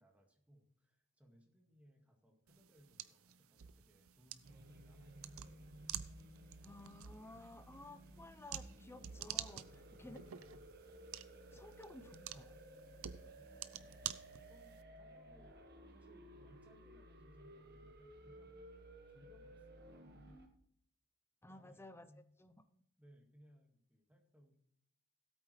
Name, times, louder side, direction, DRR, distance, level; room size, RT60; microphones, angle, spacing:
voice 1, 0.0-5.5 9.7-10.8 13.4-18.6 19.1-20.4 21.5-22.2 23.0-24.6, equal, 5° right, 2 dB, 1.9 m, -67 dB
sound 1, 2.5-14.8, right 11 dB, 65° right, 0.6 m, -50 dB
sound 2, 4.4-20.5, right 1 dB, 50° right, 1.3 m, -57 dB
voice 2, 6.6-9.7 10.0-10.2 11.5-12.6 21.4-22.1 22.4-22.8, left 2 dB, 10° left, 11 dB, 0.7 m, -55 dB
17.0 x 8.6 x 3.2 m, 0.71 s
head